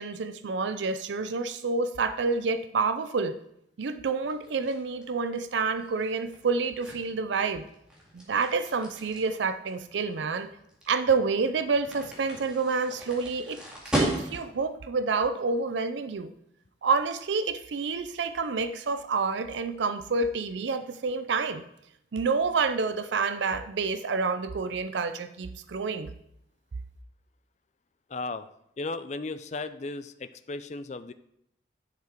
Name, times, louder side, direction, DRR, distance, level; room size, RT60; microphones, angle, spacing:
voice 1, 0.0-3.4 3.8-7.6 8.1-10.5 10.9-16.3 16.8-21.6 22.1-26.1, right 4 dB, 75° right, 10 dB, 0.5 m, -28 dB
sound 1, 4.3-14.7, right 1 dB, 5° right, 2.1 m, -37 dB
voice 2, 28.1-28.5 28.8-31.1, left 3 dB, 40° left, 12 dB, 0.4 m, -35 dB
10.5 x 5.8 x 4.5 m, 0.76 s
head